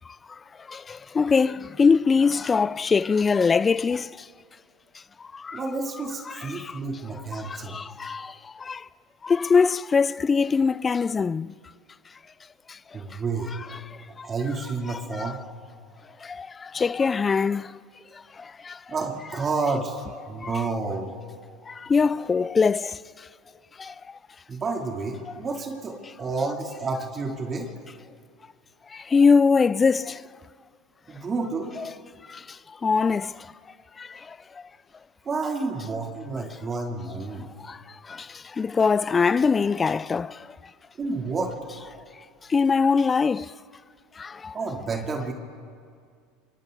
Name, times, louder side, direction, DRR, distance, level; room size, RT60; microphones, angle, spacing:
voice 1, 0.7-4.1 5.3-5.6 6.3-6.8 7.3-8.8 9.2-11.5 12.7-12.8 13.7-14.3 14.9-15.4 16.2-17.7 18.4-18.8 20.4-20.7 21.7-23.0 23.8-23.9 28.9-30.2 31.8-31.9 32.3-32.4 32.8-33.5 34.0-34.4 37.6-37.8 38.1-40.5 42.5-43.5 44.2-44.6, left 5 dB, 25° left, 0.4 m, -23 dB
voice 2, 5.5-7.8 12.9-13.5 14.2-15.4 18.9-21.1 24.5-27.7 31.1-31.8 35.2-37.5 41.0-41.5 44.5-45.3, right 3 dB, 30° right, 3.1 m, -30 dB
26.5 x 24.5 x 4.0 m
hypercardioid pair, 85°, 0 cm